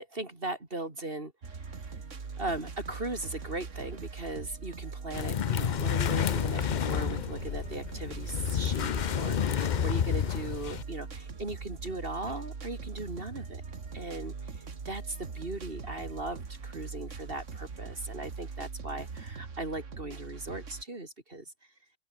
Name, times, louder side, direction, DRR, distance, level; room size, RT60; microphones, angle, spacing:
voice 1, 0.0-2.0 2.4-13.6 13.9-21.5, right 2 dB, 50° right, 3.7 m, -38 dB
sound 1, 1.4-20.8, right 5 dB, 85° right, 2.3 m, -41 dB
sound 2, 5.1-10.8, left 9 dB, 50° left, 0.6 m, -30 dB
open air
omnidirectional pair, 1.2 m